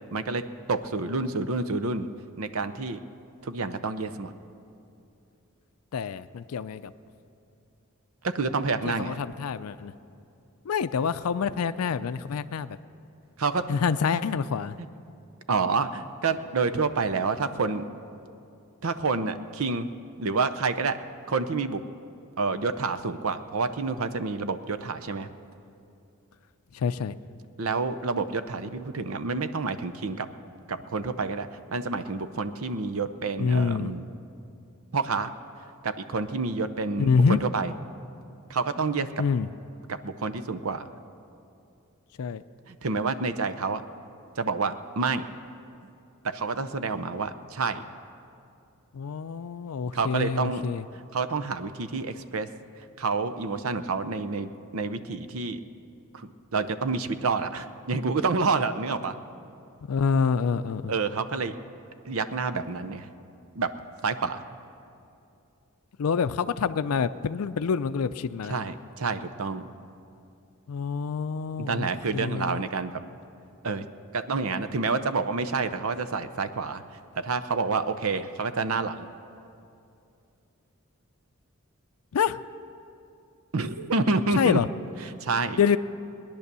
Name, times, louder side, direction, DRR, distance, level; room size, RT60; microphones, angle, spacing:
voice 1, 0.1-0.4 0.7-2.1 2.4-3.0 3.4-4.3 8.2-9.2 13.4-13.6 15.5-17.8 18.8-19.9 20.2-21.0 21.3-21.8 22.4-25.3 27.6-30.3 30.7-34.0 34.9-35.3 35.8-37.7 38.5-39.1 39.9-40.8 42.7-43.8 44.4-45.3 46.2-47.8 49.9-50.6 51.1-52.5 53.0-55.6 56.1-59.2 60.9-61.6 62.0-63.1 63.5-63.7 64.0-64.4 68.5-69.7 71.6-73.0 73.6-73.9 74.1-76.8 77.2-79.1 83.5-84.6 85.0-85.8, right 4 dB, 70° right, 11 dB, 0.7 m, -28 dB
voice 2, 5.9-6.9 8.8-9.9 10.7-12.8 13.7-14.8 26.7-27.1 33.4-33.9 37.0-37.4 39.2-39.5 42.2-42.4 48.9-50.8 59.9-60.9 66.0-68.6 70.7-72.6 82.1-82.4 84.4-84.7 85.6-85.8, left 6 dB, 85° left, 13 dB, 0.4 m, -26 dB
19.5 x 10.5 x 6.8 m, 2.6 s
head